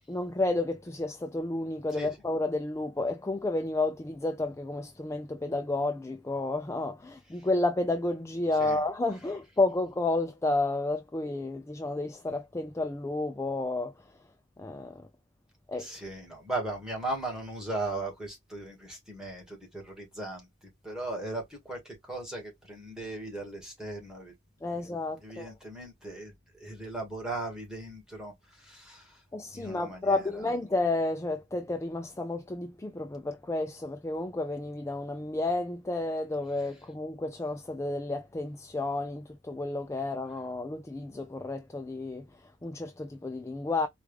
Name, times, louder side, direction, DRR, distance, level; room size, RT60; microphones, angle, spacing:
voice 1, 0.1-14.2 14.6-15.1 15.7-15.9 24.6-25.5 29.3-43.9, left 2 dB, 15° left, 0.4 m, -31 dB
voice 2, 15.8-24.3 25.2-29.2 29.5-30.4, right 2 dB, 5° right, 1.7 m, -38 dB
4.5 x 2.4 x 3.2 m
head